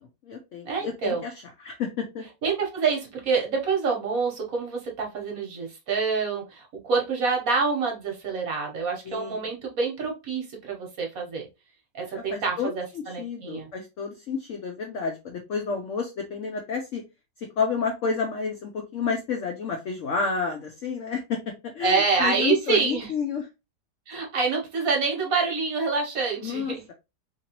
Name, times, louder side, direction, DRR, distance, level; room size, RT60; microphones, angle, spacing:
voice 1, 0.0-1.3 1.6-2.2 9.0-9.4 12.0-17.0 17.4-23.5 26.4-26.9, left 5 dB, 75° left, 3 dB, 0.7 m, -30 dB
voice 2, 0.6-1.2 2.4-11.5 11.9-13.7 21.8-23.1 24.1-26.8, right 4 dB, 60° right, 1 dB, 1.2 m, -27 dB
3.0 x 2.8 x 2.8 m, 0.25 s
omnidirectional pair, 1.9 m